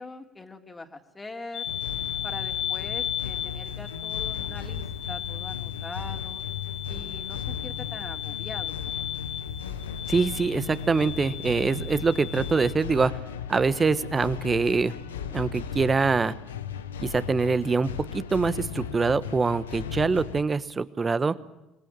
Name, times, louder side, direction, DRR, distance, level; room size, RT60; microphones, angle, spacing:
voice 1, 0.0-1.6 2.2-6.4 6.9-8.8, left 3 dB, 25° left, 5 dB, 3.1 m, -42 dB
sound 1, 1.5-12.7, left 11 dB, 65° left, 1.4 m, -35 dB
sound 2, 1.7-20.4, left 7 dB, 90° left, 0.9 m, -36 dB
voice 2, 10.1-13.1 13.5-14.9 15.3-16.3 17.0-21.3, right 4 dB, 30° right, 13 dB, 1.3 m, -24 dB
26.0 x 20.0 x 7.7 m, 1.0 s
hypercardioid pair, 55°, 0 cm